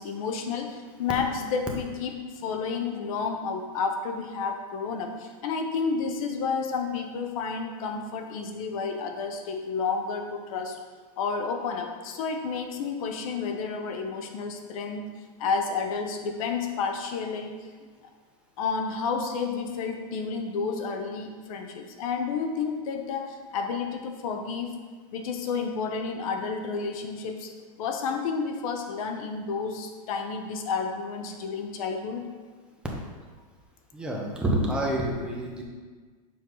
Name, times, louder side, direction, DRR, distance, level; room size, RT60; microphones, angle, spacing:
voice 1, 0.0-10.8 11.2-15.1 15.4-17.5 18.6-24.7 25.1-27.5 27.8-32.3, left 5 dB, 65° left, 4 dB, 0.9 m, -31 dB
voice 2, 33.9-35.6, right 1 dB, 5° right, -2 dB, 1.0 m, -28 dB
7.0 x 4.6 x 3.9 m, 1.5 s
supercardioid pair, 140°, 19 cm